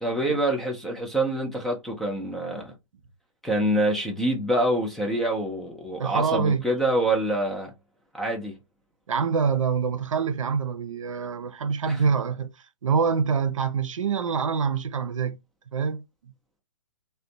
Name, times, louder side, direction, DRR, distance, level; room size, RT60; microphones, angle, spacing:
voice 1, 0.0-2.7 3.4-7.7 8.1-8.6 11.9-12.0, right 1 dB, ahead, 0.4 m, -26 dB
voice 2, 6.0-6.6 9.1-12.5 12.8-15.4 15.7-16.3, right 6 dB, 80° right, 0.5 m, -25 dB
2.4 x 2.2 x 2.6 m
hypercardioid pair, 135°, 16 cm